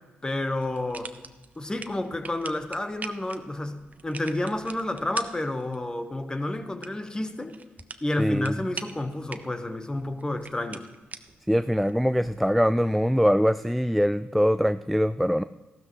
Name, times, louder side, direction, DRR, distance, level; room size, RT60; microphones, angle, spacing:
voice 1, 0.2-1.1 1.6-7.6 8.0-10.9, left 1 dB, 20° left, 8 dB, 1.2 m, -30 dB
sound 1, 0.6-12.5, right 4 dB, 40° right, 0.8 m, -44 dB
voice 2, 8.2-8.5 11.5-15.4, equal, ahead, 13 dB, 0.3 m, -23 dB
14.5 x 12.5 x 3.1 m, 1.2 s
cardioid pair, 65°, 4 cm